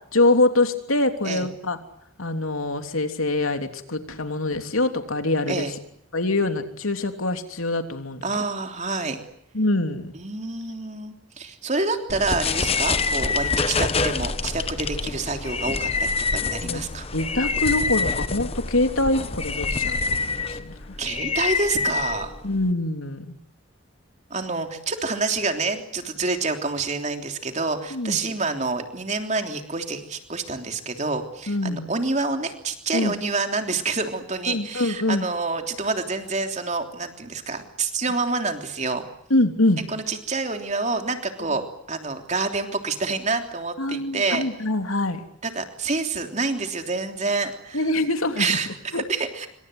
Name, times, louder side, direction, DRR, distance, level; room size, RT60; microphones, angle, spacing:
voice 1, 0.1-1.8 2.2-5.7 6.1-8.2 9.5-10.1 16.6-16.8 17.1-21.0 22.4-23.3 27.9-28.2 31.5-31.9 32.9-33.1 34.5-35.2 39.3-39.8 43.8-45.2 47.7-48.6 48.9-49.0, left 2 dB, 85° left, 6 dB, 3.2 m, -24 dB
voice 2, 8.2-9.2 10.1-17.1 21.0-22.3 24.3-39.1 39.9-44.4 45.4-47.9 48.4-49.5, right 3 dB, 35° right, 5 dB, 3.3 m, -27 dB
sound 1, 12.1-22.7, left 4 dB, 30° left, 1.1 m, -26 dB
27.5 x 25.5 x 7.9 m, 0.72 s
head